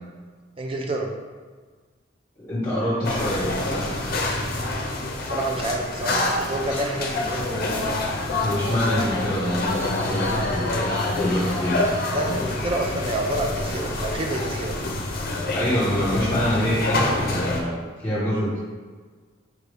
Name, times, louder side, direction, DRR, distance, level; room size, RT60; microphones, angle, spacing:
voice 1, 0.6-1.1 5.2-7.7 12.1-14.8, right 1 dB, 30° right, 2 dB, 0.5 m, -28 dB
voice 2, 2.4-3.9 8.4-11.8 15.5-18.6, equal, 15° left, -11 dB, 1.3 m, -25 dB
sound 1, 3.0-17.6, left 2 dB, 50° left, 0.6 m, -27 dB
4.6 x 2.7 x 3.4 m, 1.5 s
head